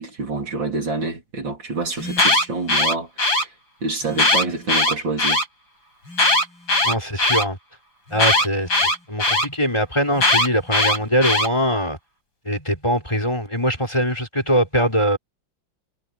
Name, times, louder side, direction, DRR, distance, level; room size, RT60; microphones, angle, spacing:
voice 1, 0.0-3.5 3.8-5.4, right 3 dB, 70° right, 4.5 m, -27 dB
Alarm, 2.0-3.4 4.1-5.4 6.1-7.4 8.2-9.5 10.2-11.5, left 2 dB, 80° left, 7.1 m, -19 dB
voice 2, 6.8-7.6 8.1-12.0 12.5-15.2, equal, 15° left, 5.5 m, -22 dB
omnidirectional pair, 2.1 m